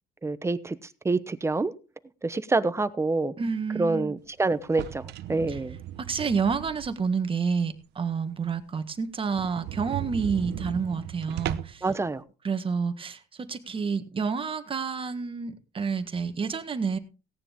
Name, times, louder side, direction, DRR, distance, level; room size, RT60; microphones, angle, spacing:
voice 1, 0.2-0.8 1.0-1.7 2.2-3.3 3.8-5.8 11.8-12.2, right 3 dB, 15° right, 1.0 m, -26 dB
voice 2, 3.4-4.1 5.5-5.6 6.0-11.9 12.4-17.0, right 5 dB, 30° right, 1.6 m, -29 dB
sound 1, 4.6-7.2 7.6-7.7 8.1-8.2 8.5-8.6 8.8-8.9 9.3-11.9, right 12 dB, 80° right, 1.0 m, -36 dB
17.5 x 10.0 x 3.6 m
cardioid pair, 110°, 17 cm